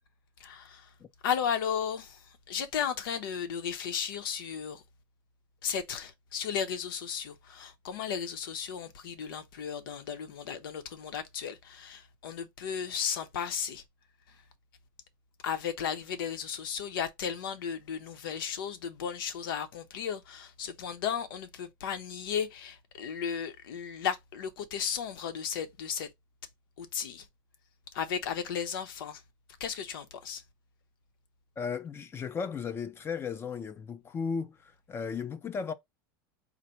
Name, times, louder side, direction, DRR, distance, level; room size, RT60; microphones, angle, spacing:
voice 1, 0.4-0.8 1.2-2.2 2.5-4.8 5.6-13.8 15.4-26.1 26.8-27.2 27.9-29.2 29.6-30.4, left 7 dB, 85° left, 0.8 m, -34 dB
voice 2, 31.6-35.7, left 6 dB, 20° left, 0.5 m, -35 dB
4.0 x 2.2 x 4.3 m
supercardioid pair, 140°, 11 cm